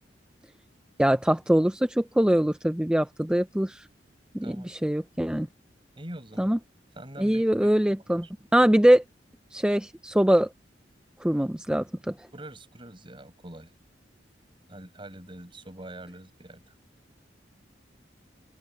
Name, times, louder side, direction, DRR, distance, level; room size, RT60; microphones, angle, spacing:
voice 1, 1.0-3.9 4.3-5.5 6.4-6.6 7.2-8.3 8.5-9.0 9.5-10.5 11.2-12.1, equal, 5° right, 0.4 m, -23 dB
voice 2, 5.9-6.5 6.9-7.7 12.3-13.7 14.7-16.7, right 1 dB, 30° right, 6.3 m, -44 dB
open air
head